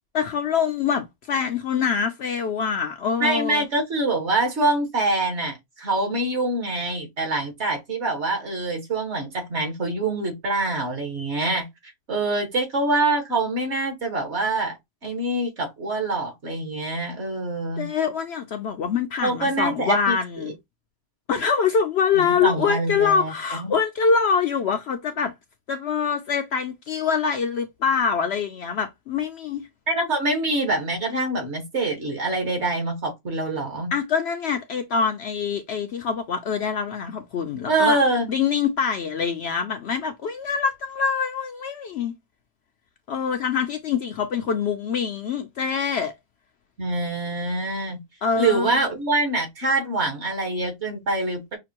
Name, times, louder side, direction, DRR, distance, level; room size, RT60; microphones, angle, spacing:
voice 1, 0.1-3.7 17.8-20.5 21.3-25.3 25.7-29.7 33.9-38.0 38.3-42.1 43.1-46.1 48.2-48.8, left 6 dB, 65° left, 0.7 m, -24 dB
voice 2, 3.2-11.7 12.1-14.8 15.0-17.9 19.2-20.2 22.1-23.7 29.9-33.9 37.7-38.3 46.8-48.0 48.4-51.6, right 2 dB, 55° right, 1.8 m, -25 dB
5.8 x 2.5 x 2.9 m
omnidirectional pair, 1.4 m